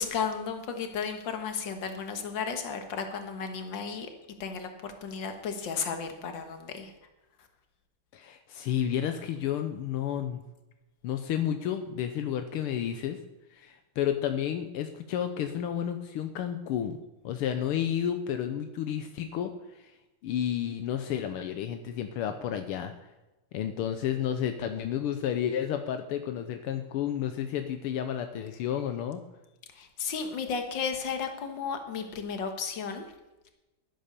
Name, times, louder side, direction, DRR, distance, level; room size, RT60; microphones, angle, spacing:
voice 1, 0.0-4.1 4.4-6.9 29.8-33.1, left 6 dB, 60° left, 6 dB, 2.0 m, -34 dB
voice 2, 8.1-10.4 11.0-13.2 13.5-17.0 17.2-19.9 20.2-22.9 23.5-29.2, left 9 dB, 80° left, 7 dB, 1.7 m, -31 dB
11.5 x 9.9 x 6.8 m, 1.0 s
omnidirectional pair, 2.4 m